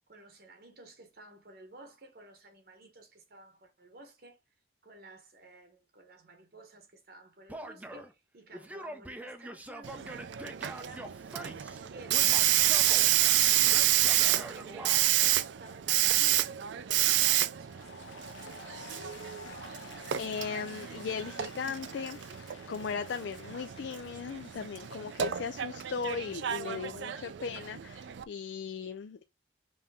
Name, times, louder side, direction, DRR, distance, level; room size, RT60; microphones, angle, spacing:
voice 1, 0.1-4.4 4.8-10.1 10.4-11.2 11.8-14.5 15.2-18.1, right 2 dB, 50° right, 0.9 m, -54 dB
Male speech man speaking / Yell, 7.5-8.1 8.5-11.8 12.1-13.1 13.7-15.0, right 1 dB, 10° right, 0.4 m, -44 dB
Hiss, 9.8-28.2, right 13 dB, 70° right, 0.4 m, -29 dB
Applause, 17.6-26.3, left 5 dB, 85° left, 0.8 m, -52 dB
voice 2, 20.2-22.2 22.7-29.2, left 6 dB, 65° left, 0.4 m, -37 dB
5.5 x 2.8 x 3.4 m
head